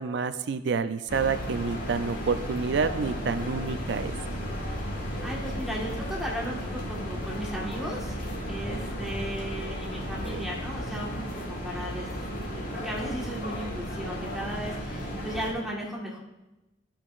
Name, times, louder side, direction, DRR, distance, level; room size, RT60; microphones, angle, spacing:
voice 1, 0.0-4.1 10.2-10.5, right 5 dB, 70° right, 11 dB, 0.4 m, -28 dB
sound 1, 1.1-15.5, equal, 50° left, 1.6 m, -34 dB
voice 2, 5.2-8.2 8.5-12.1 12.5-16.2, equal, ahead, -4 dB, 1.4 m, -36 dB
13.0 x 5.8 x 2.5 m, 0.98 s
head